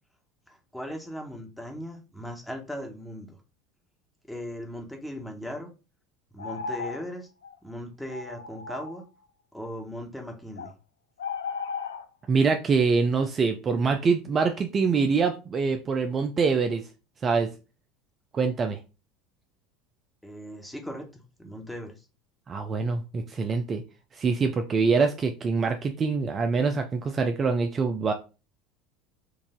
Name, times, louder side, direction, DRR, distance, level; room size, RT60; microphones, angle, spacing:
voice 1, 0.5-3.4 4.3-5.7 6.3-7.3 7.6-9.0 9.5-10.7 20.2-22.1, equal, 5° left, 2 dB, 1.4 m, -38 dB
sound 1, 6.4-7.0 7.4-7.5 8.1-9.0 10.6-10.7 11.2-12.0, left 5 dB, 80° left, 0.3 m, -35 dB
voice 2, 12.3-16.8 17.2-17.5 18.3-18.8 22.5-23.8 24.1-28.1, right 4 dB, 30° right, 6 dB, 0.5 m, -24 dB
4.8 x 2.7 x 3.7 m, 0.31 s
hypercardioid pair, 75°, 0 cm